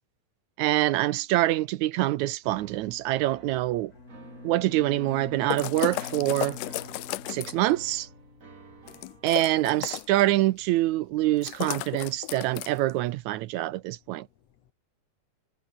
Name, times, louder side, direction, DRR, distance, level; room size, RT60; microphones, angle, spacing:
voice 1, 0.6-3.9 4.4-6.6 7.3-8.1 9.2-14.3, right 16 dB, 75° right, 1.9 m, -25 dB
sound 1, 2.4-9.3, right 4 dB, 30° right, 2.2 m, -52 dB
Bowed string instrument, 3.9-8.6, left 3 dB, 30° left, 3.9 m, -45 dB
sound 2, 5.5-7.7 8.9-10.2 11.4-12.9, left 18 dB, 90° left, 2.3 m, -34 dB
voice 2, 8.3-9.3 14.3-14.7, left 10 dB, 60° left, 2.3 m, -62 dB
omnidirectional pair, 3.6 m